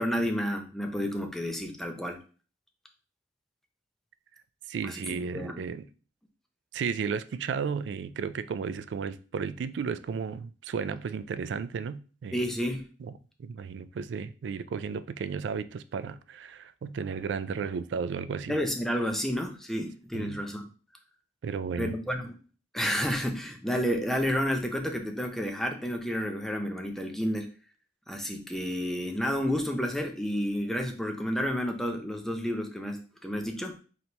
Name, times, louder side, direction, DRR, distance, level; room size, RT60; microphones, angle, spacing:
voice 1, 0.0-2.2 4.8-5.6 12.3-12.9 18.5-20.7 21.8-22.4 22.7-27.5 28.1-33.8, equal, ahead, 4 dB, 0.5 m, -30 dB
voice 2, 4.7-5.9 6.7-12.4 13.0-13.1 13.4-18.6 20.1-20.4 21.4-21.9, right 6 dB, 85° right, 14 dB, 0.3 m, -34 dB
4.2 x 3.3 x 2.9 m, 0.37 s
head